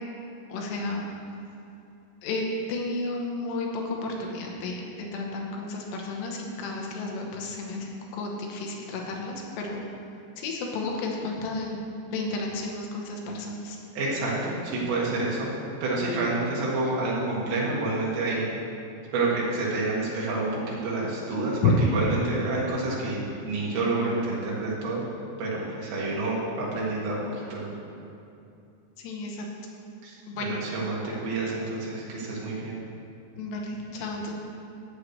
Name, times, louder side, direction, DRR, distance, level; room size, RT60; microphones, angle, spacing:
voice 1, 0.5-1.0 2.2-9.8 10.4-13.8 21.4-21.7 29.0-29.5 30.3-30.6 33.4-34.3, left 3 dB, 80° left, 0 dB, 3.1 m, -32 dB
voice 2, 13.9-15.5 15.8-18.5 19.1-25.0 25.4-27.7 30.0-30.2 30.4-32.8, right 2 dB, 85° right, -6 dB, 4.1 m, -28 dB
14.0 x 8.0 x 3.2 m, 2.7 s
omnidirectional pair, 5.0 m